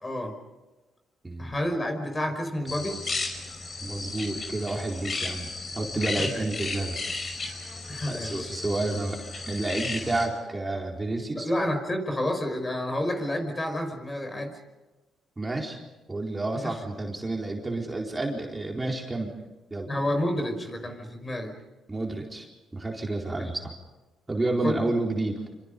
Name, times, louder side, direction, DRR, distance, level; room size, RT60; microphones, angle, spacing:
voice 1, 0.0-0.3 1.4-3.0 6.2-6.5 7.9-8.5 11.3-14.5 16.5-16.8 19.9-21.5 23.4-23.5 24.6-24.9, left 1 dB, 25° left, 5 dB, 5.4 m, -30 dB
voice 2, 1.2-1.5 3.8-5.5 5.7-7.0 8.1-9.2 9.5-11.5 15.4-15.8 16.1-19.3 19.7-19.9 21.9-22.5 22.7-23.8 24.3-25.4, right 2 dB, 15° right, 0 dB, 4.4 m, -30 dB
sound 1, 2.7-10.3, left 3 dB, 40° left, 5.4 m, -34 dB
27.5 x 26.5 x 5.4 m, 1.1 s
cardioid pair, 90°, 0 cm